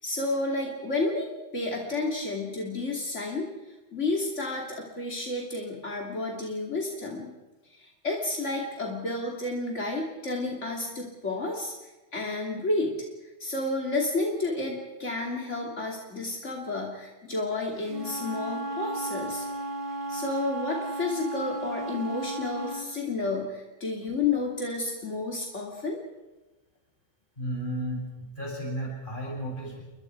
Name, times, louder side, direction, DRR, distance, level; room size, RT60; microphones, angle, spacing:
voice 1, 0.0-3.5 3.9-7.3 7.7-11.7 12.1-13.0 13.4-19.5 20.1-26.0, left 2 dB, 80° left, -1 dB, 3.3 m, -31 dB
Wind instrument woodwind instrument, 17.8-22.9, right 2 dB, 45° right, 2.8 m, -34 dB
voice 2, 27.4-29.8, equal, 45° left, -2 dB, 7.6 m, -33 dB
29.5 x 23.5 x 4.7 m, 1.1 s
omnidirectional pair, 1.2 m